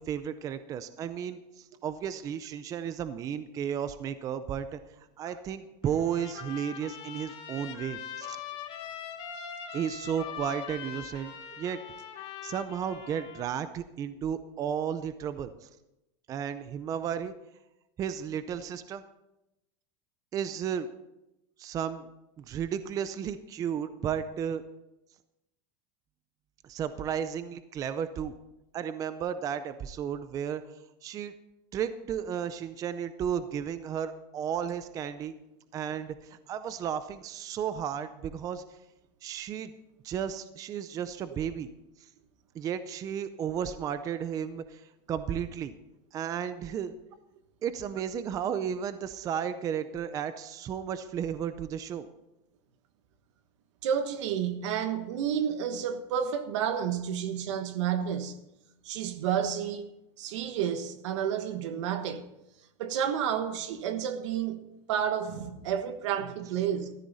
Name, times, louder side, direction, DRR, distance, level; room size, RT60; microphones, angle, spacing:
voice 1, 0.0-4.8 5.2-8.4 9.7-11.8 12.4-15.7 16.3-17.3 18.0-19.0 20.3-20.9 21.6-22.1 22.4-24.6 26.6-28.3 28.7-30.6 31.0-31.3 31.7-35.3 35.7-38.6 39.2-39.7 40.0-41.7 42.5-45.7 46.1-46.9 47.6-52.1, right 8 dB, 20° right, 0.5 m, -33 dB
Trumpet, 5.8-13.4, left 8 dB, 35° left, 2.8 m, -42 dB
voice 2, 53.8-58.4 58.8-59.9 60.2-62.3 62.8-64.6 64.9-66.9, right 8 dB, 75° right, 1.3 m, -30 dB
14.0 x 12.5 x 4.1 m
supercardioid pair, 165°, 15 cm